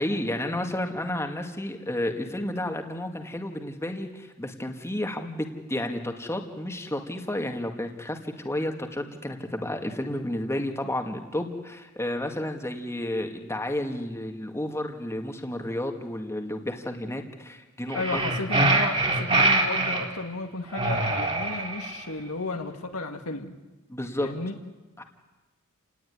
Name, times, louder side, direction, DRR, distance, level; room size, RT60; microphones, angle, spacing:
voice 1, 0.0-18.2 23.9-24.3 25.0-25.1, left 1 dB, 10° left, 4 dB, 2.2 m, -31 dB
voice 2, 17.9-23.6 24.2-24.6, left 2 dB, 75° left, 5 dB, 2.3 m, -33 dB
sound 1, 17.9-20.1 20.7-22.0, right 2 dB, 30° right, 3.6 m, -24 dB
29.5 x 19.0 x 9.7 m, 1.2 s
head